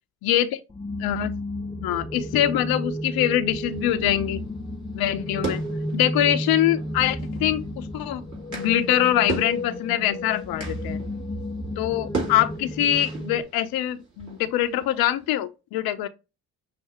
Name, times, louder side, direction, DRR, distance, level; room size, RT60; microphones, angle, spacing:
voice 1, 0.2-0.6 1.0-1.4 1.8-4.4 4.9-5.6 5.9-8.2 8.5-11.0 11.8-16.1, left 12 dB, 55° left, 0.5 m, -24 dB
sound 1, 0.7-13.4, left 1 dB, 10° left, 0.4 m, -32 dB
sound 2, 3.6-15.3, right 3 dB, 40° right, 2.5 m, -38 dB
5.7 x 2.6 x 2.8 m
hypercardioid pair, 50°, 43 cm